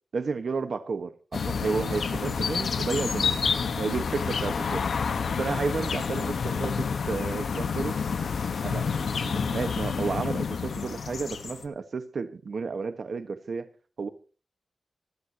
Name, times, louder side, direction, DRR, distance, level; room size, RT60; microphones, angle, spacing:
voice 1, 0.1-3.4 3.8-4.9 5.4-8.0 8.6-13.7 14.0-14.1, right 4 dB, 55° right, 1.4 m, -32 dB
sound 1, 1.3-11.6, left 5 dB, 65° left, 1.4 m, -29 dB
26.0 x 13.0 x 3.0 m
wide cardioid pair, 180°, 0 cm